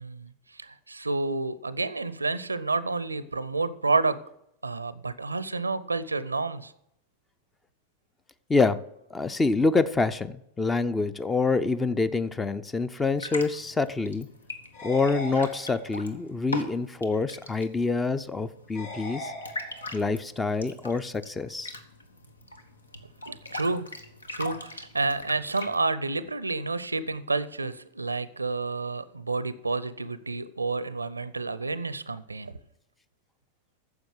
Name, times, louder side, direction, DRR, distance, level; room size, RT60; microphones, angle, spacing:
voice 1, 0.0-4.2 4.6-6.7 23.3-23.9 24.3-32.6, right 3 dB, 80° right, 17 dB, 0.6 m, -30 dB
voice 2, 9.1-14.3 14.8-19.3 19.9-21.7, left 3 dB, 10° left, 15 dB, 0.6 m, -26 dB
sound 1, 13.0-25.8, left 2 dB, 75° left, 1.2 m, -41 dB
sound 2, 14.7-16.2 18.7-20.2, left 1 dB, 55° left, 4.3 m, -40 dB
9.5 x 7.1 x 7.6 m, 0.80 s
figure-of-eight pair, 90°, 0 cm